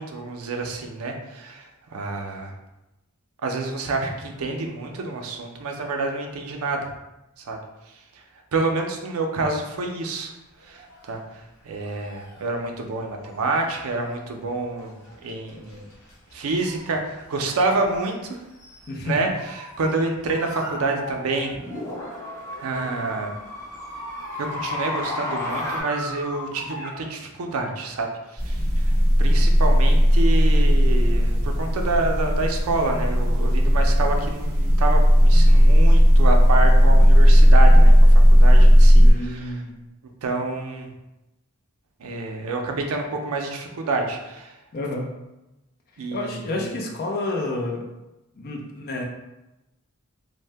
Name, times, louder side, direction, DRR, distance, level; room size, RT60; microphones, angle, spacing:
voice 1, 0.0-2.5 3.4-6.9 7.5-7.6 7.9-8.2 8.5-10.3 10.6-14.9 15.2-15.8 16.3-18.4 19.0-21.6 22.6-23.4 24.3-39.6 40.2-40.9 42.0-44.6 46.0-46.7, right 3 dB, 70° right, 3 dB, 0.5 m, -28 dB
sound 1, 10.0-27.2, right 1 dB, 75° left, 0.8 m, -42 dB
sound 2, 17.9-18.0 20.1-20.3 21.4-25.8, left 1 dB, 10° left, 0.9 m, -32 dB
voice 2, 18.9-19.2 39.0-39.9 44.7-45.2 46.0-47.9 48.4-49.0, left 2 dB, 45° left, 1 dB, 0.4 m, -30 dB
sound 3, 28.4-39.1, equal, 15° right, 1.3 m, -15 dB
2.6 x 2.1 x 3.3 m, 0.97 s
head